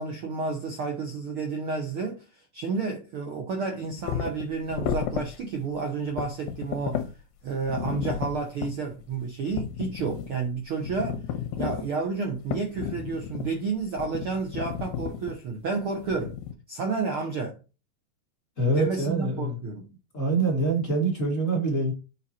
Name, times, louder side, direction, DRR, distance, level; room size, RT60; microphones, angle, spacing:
voice 1, 0.0-7.1 7.4-11.2 11.6-16.3 16.7-17.6 18.7-19.9, right 4 dB, 85° right, 1.2 m, -31 dB
sound 1, 4.0-5.4 5.6-5.7 6.0-7.1 7.7-8.7 9.0-9.1 9.5-10.3 10.6-11.9 12.5-13.5 14.0-15.4 16.0-16.5, left 9 dB, 80° left, 2.7 m, -32 dB
voice 2, 18.6-19.6 20.1-21.9, right 2 dB, 30° left, 1.7 m, -25 dB
7.7 x 5.6 x 4.3 m
omnidirectional pair, 4.2 m